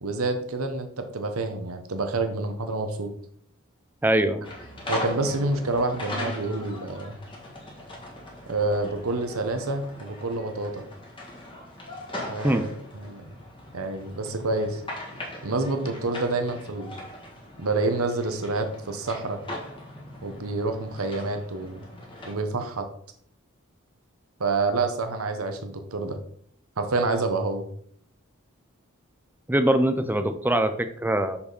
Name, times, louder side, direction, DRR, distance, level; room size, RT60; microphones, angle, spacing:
voice 1, 0.0-3.1 4.9-7.2 8.5-10.8 12.3-12.7 12.9-13.2 13.7-14.8 15.4-16.9 17.6-19.4 20.2-21.8 22.2-22.9 24.4-26.2 26.8-27.7, right 3 dB, 90° right, 7 dB, 1.0 m, -28 dB
voice 2, 4.0-4.5 12.4-12.7 29.5-31.4, right 1 dB, 10° right, 9 dB, 0.5 m, -23 dB
sound 1, 4.4-22.3, left 1 dB, 25° left, 1.7 m, -40 dB
6.2 x 5.8 x 4.0 m, 0.62 s
head